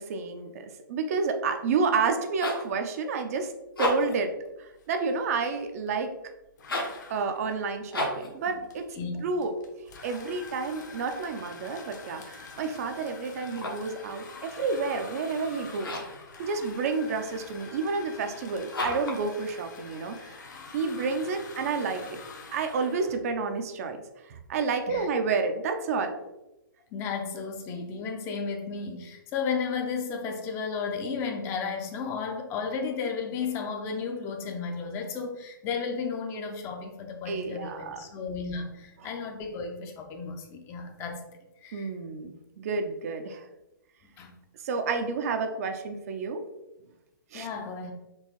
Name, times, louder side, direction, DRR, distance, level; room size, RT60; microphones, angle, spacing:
voice 1, 0.0-3.5 3.8-4.3 4.6-6.1 7.1-8.8 9.2-9.5 10.0-15.9 16.4-22.2 22.5-24.0 24.2-26.2 37.3-38.0 41.7-43.5 44.6-46.4 47.3-47.5, right 4 dB, 45° right, 6 dB, 0.4 m, -30 dB
sound 1, 2.2-2.7 3.6-4.2 6.6-7.0 7.9-8.3 13.4-13.9 15.8-16.2 18.7-19.2, left 1 dB, 80° left, 1.1 m, -32 dB
sound 2, 4.2-4.5 4.7-6.0 6.6-23.2, left 4 dB, 55° left, 0.8 m, -46 dB
voice 2, 8.9-9.3 24.9-25.1 26.9-41.2 41.6-41.9 44.2-44.3 47.3-47.9, left 5 dB, 20° left, 3 dB, 0.5 m, -33 dB
4.5 x 3.0 x 2.9 m, 0.96 s
figure-of-eight pair, 125°, 12 cm